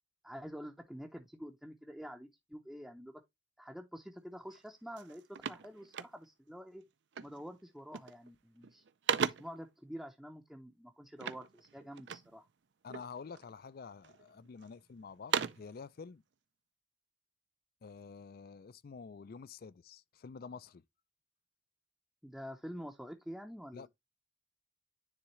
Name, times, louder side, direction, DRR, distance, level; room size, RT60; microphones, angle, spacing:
voice 1, 0.2-3.2 3.6-6.8 7.2-8.8 9.2-12.5 22.2-23.9, equal, ahead, 0.6 m, -47 dB
sound 1, 4.5-4.7 5.0-6.5 7.1-7.5 7.8-8.3 8.6-9.7 11.2-12.4 12.9-13.5 14.0-14.7 15.1-15.8, right 7 dB, 65° right, 0.5 m, -38 dB
voice 2, 12.8-16.2 17.8-20.8 23.7-23.9, left 5 dB, 50° left, 0.4 m, -49 dB
9.8 x 3.6 x 3.0 m
head